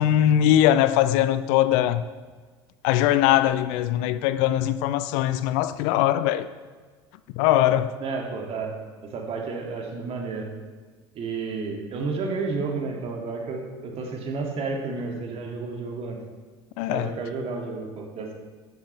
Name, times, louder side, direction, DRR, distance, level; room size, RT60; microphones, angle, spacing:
voice 1, 0.0-2.0 2.8-6.5 7.3-7.9 16.8-17.1, left 12 dB, 60° left, 0.5 m, -21 dB
voice 2, 8.0-8.7 9.0-10.5 11.2-16.2 16.9-18.3, right 4 dB, 45° right, 2.3 m, -31 dB
13.0 x 10.5 x 3.4 m
figure-of-eight pair, 70°, 14 cm